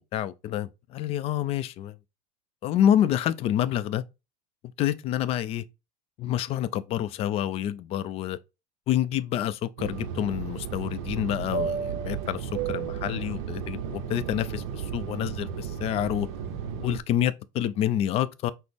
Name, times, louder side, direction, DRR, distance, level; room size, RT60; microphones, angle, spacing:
voice 1, 0.1-2.0 2.6-4.0 4.8-5.6 6.2-8.4 8.9-16.3 16.8-18.5, left 11 dB, 35° left, 0.4 m, -28 dB
Fixed-wing aircraft airplane, 9.8-17.0, right 7 dB, 65° right, 0.7 m, -33 dB
5.9 x 2.0 x 3.4 m
supercardioid pair, 140°, 17 cm